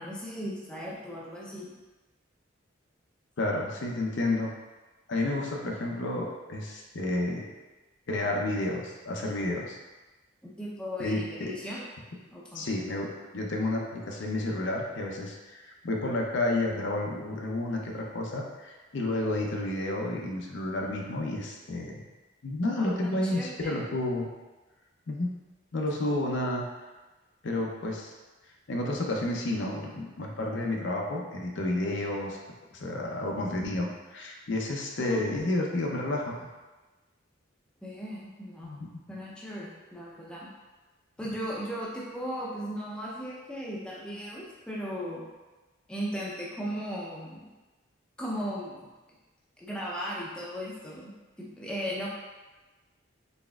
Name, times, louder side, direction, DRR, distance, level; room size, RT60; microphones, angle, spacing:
voice 1, 0.0-1.7 10.4-11.8 12.3-12.7 22.7-22.9 23.3-23.6 35.0-35.2 36.0-36.1 37.8-38.8 39.1-40.5 41.2-45.3 45.9-47.5 48.2-48.9 49.6-51.1 51.4-52.1, equal, 5° left, -6 dB, 0.5 m, -37 dB
voice 2, 3.4-4.5 5.1-7.5 8.1-9.8 11.0-11.5 12.5-22.0 22.4-24.3 25.1-25.3 25.7-26.6 27.4-28.1 28.7-32.4 32.7-36.4 38.6-38.8, left 2 dB, 65° left, 0 dB, 0.5 m, -31 dB
4.1 x 3.3 x 2.3 m, 1.2 s
head